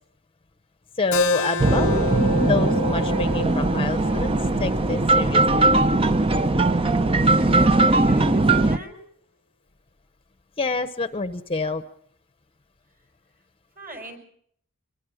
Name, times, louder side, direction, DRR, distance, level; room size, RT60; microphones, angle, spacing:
voice 1, 1.0-2.0 2.5-4.3 4.6-5.8 10.6-11.8, left 3 dB, 25° left, 10 dB, 0.9 m, -27 dB
Keyboard (musical), 1.1-6.3, left 3 dB, 65° left, 0.8 m, -30 dB
sound 1, 1.6-8.8, right 2 dB, 25° right, 0.7 m, -20 dB
voice 2, 7.3-9.0 13.7-14.2, right 2 dB, 40° right, 5 dB, 5.9 m, -39 dB
24.0 x 22.0 x 4.9 m, 0.65 s
head